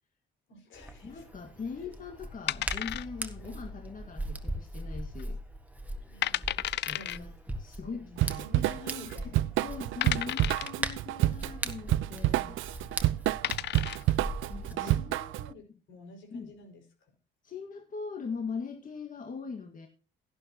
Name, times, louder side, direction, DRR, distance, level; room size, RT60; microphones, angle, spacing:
voice 1, 0.5-1.3 1.8-1.9 3.4-3.7 6.0-6.6 6.9-7.3 7.8-9.5 14.6-17.1, left 3 dB, 75° left, 3 dB, 5.4 m, -49 dB
Hands, 0.7-14.7, right 1 dB, 5° right, 1.7 m, -40 dB
voice 2, 1.0-5.4 6.5-7.3 7.6-8.5 9.6-12.6 14.5-15.2 16.3-16.5 17.4-19.9, left 5 dB, 45° left, 4 dB, 1.9 m, -41 dB
sound 1, 2.5-3.4 3.7-3.8 4.4-4.8 5.2-5.3 5.9-6.0 6.2-7.2 8.3-8.4 9.0-9.1 10.0-10.8 12.7-12.8 13.2-14.1, left 13 dB, 60° left, 0.4 m, -33 dB
Drum kit / Drum, 8.2-15.5, right 15 dB, 85° right, 0.5 m, -29 dB
12.5 x 11.5 x 2.9 m, 0.36 s
cardioid pair, 90°, 20 cm